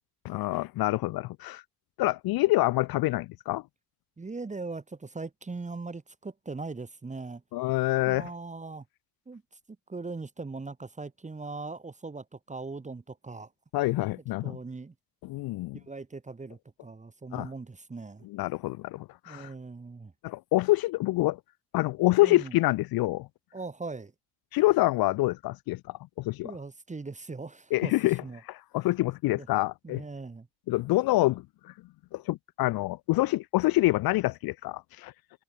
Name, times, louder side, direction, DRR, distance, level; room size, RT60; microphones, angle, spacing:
voice 1, 0.2-1.6 2.0-3.6 7.5-8.3 13.7-14.5 15.2-15.8 17.3-17.5 18.3-19.5 20.2-21.4 21.7-23.3 24.5-26.5 27.7-28.2 28.5-30.0 30.7-31.4 32.1-35.1, left 18 dB, 60° left, 0.5 m, -26 dB
voice 2, 4.2-7.4 8.0-8.8 9.3-9.4 9.9-13.5 14.4-14.9 15.7-18.3 19.2-20.1 22.2-22.5 23.5-24.1 26.4-27.9 28.2-28.4 29.3-29.5 29.8-30.5, right 3 dB, 15° right, 1.6 m, -40 dB
cardioid pair, 110°, 41 cm